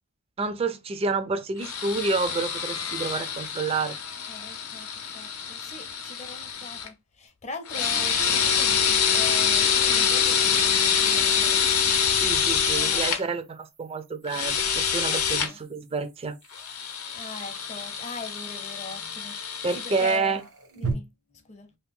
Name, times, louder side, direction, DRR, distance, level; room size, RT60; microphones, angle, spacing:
voice 1, 0.4-4.0 12.2-16.4 19.6-20.4, right 4 dB, 25° right, 0.4 m, -29 dB
sound 1, 1.6-6.9 7.7-13.2 14.3-15.5 16.5-20.2, left 7 dB, 85° left, 0.7 m, -25 dB
voice 2, 4.3-11.7 12.7-13.3 15.0-15.6 17.1-20.4 20.8-21.8, left 3 dB, 30° left, 0.6 m, -41 dB
sound 2, 7.3-7.4 10.8-20.9, right 4 dB, 85° right, 1.0 m, -43 dB
2.7 x 2.1 x 3.7 m
head